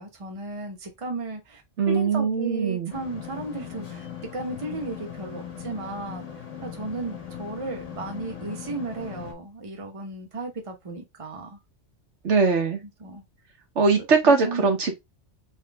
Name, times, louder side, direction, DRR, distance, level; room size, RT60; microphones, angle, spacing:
voice 1, 0.0-1.6 1.9-4.1 4.3-6.3 6.6-11.6 12.8-13.2 14.2-14.7, right 3 dB, 30° right, 1.1 m, -35 dB
voice 2, 1.8-2.9 12.2-12.8 13.7-15.0, right 4 dB, 70° right, 1.5 m, -21 dB
sound 1, 2.9-9.3, left 9 dB, 85° left, 1.7 m, -39 dB
4.1 x 3.2 x 3.4 m
omnidirectional pair, 1.2 m